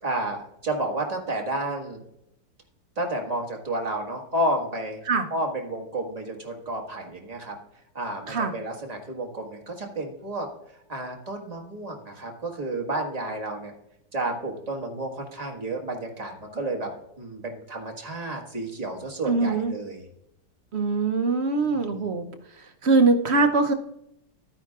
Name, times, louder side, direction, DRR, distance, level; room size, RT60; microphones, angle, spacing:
voice 1, 0.0-2.0 2.9-5.0 5.3-7.6 7.9-10.5 10.9-13.7 14.1-16.9 17.2-20.0 21.6-22.1, right 1 dB, 20° right, 1 dB, 1.6 m, -31 dB
voice 2, 19.2-19.7 20.7-22.3 22.8-23.7, right 3 dB, 55° right, 6 dB, 0.7 m, -22 dB
12.0 x 10.0 x 2.4 m, 0.78 s
omnidirectional pair, 1.9 m